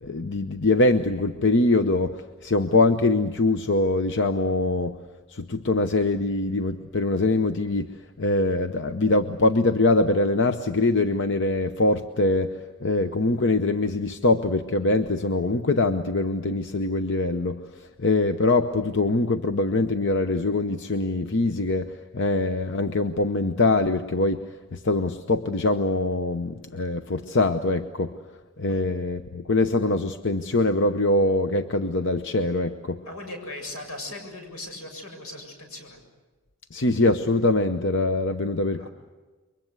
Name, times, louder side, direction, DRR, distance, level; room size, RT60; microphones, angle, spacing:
voice 1, 0.0-5.0 5.3-17.6 18.0-24.4 24.7-28.1 28.6-33.0 36.7-38.9, left 2 dB, 55° left, 8 dB, 0.9 m, -23 dB
voice 2, 33.1-36.0 38.7-38.9, left 2 dB, 85° left, 5 dB, 7.4 m, -38 dB
28.5 x 23.5 x 8.2 m, 1.2 s
head